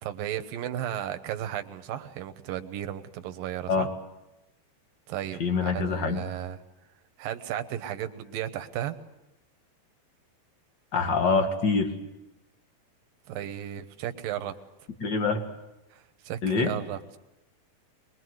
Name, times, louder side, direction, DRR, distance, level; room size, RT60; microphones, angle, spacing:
voice 1, 0.0-3.9 5.1-6.6 7.2-9.0 13.3-14.5 15.9-17.2, right 11 dB, 70° right, 9 dB, 2.5 m, -34 dB
voice 2, 5.4-6.2 10.9-11.9 15.0-15.4 16.4-16.7, left 4 dB, 40° left, 5 dB, 1.7 m, -25 dB
23.5 x 22.0 x 7.9 m, 0.92 s
omnidirectional pair, 4.8 m